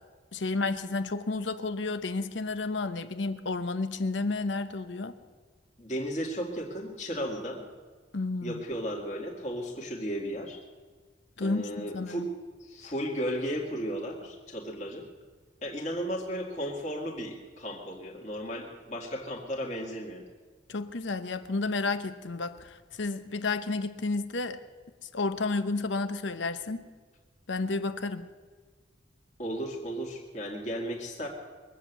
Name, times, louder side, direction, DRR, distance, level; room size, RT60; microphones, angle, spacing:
voice 1, 0.3-5.1 8.1-8.6 11.4-12.3 20.7-24.6 25.1-26.8 27.5-28.3, left 3 dB, 80° left, 11 dB, 0.9 m, -31 dB
voice 2, 5.8-7.6 8.4-10.6 11.4-12.3 12.6-15.1 15.6-20.2 29.4-31.3, equal, 40° left, -1 dB, 2.2 m, -35 dB
22.5 x 7.6 x 8.2 m, 1.5 s
head